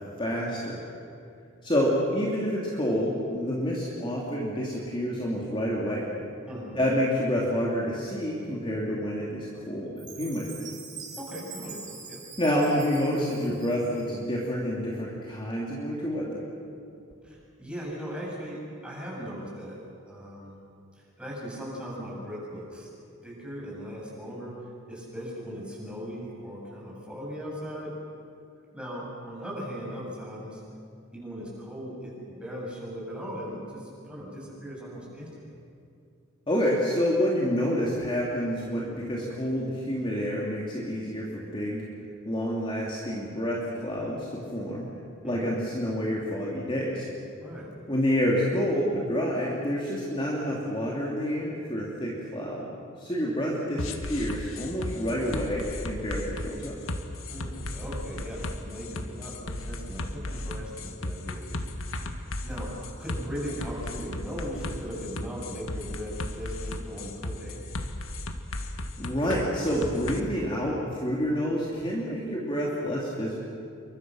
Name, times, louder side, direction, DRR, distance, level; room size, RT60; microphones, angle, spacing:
voice 1, 0.2-0.8 1.6-6.1 6.8-10.5 12.4-16.4 36.5-41.8 42.3-44.9 45.2-47.1 47.9-52.7 53.0-56.7 69.0-73.4, equal, 25° left, -4 dB, 2.9 m, -28 dB
voice 2, 6.5-6.8 11.1-11.8 12.1-12.2 17.2-19.8 20.1-20.6 21.0-22.9 23.2-24.5 24.9-27.9 28.7-30.6 31.1-35.5 45.2-45.5 47.4-47.7 57.3-62.1 62.4-62.7 63.0-67.6, equal, 5° right, -5 dB, 7.5 m, -38 dB
Chime, 10.0-14.2, right 6 dB, 35° right, 5.9 m, -44 dB
sound 1, 53.8-70.2, left 1 dB, 75° left, 1.7 m, -35 dB
28.5 x 24.0 x 6.4 m, 2.5 s
head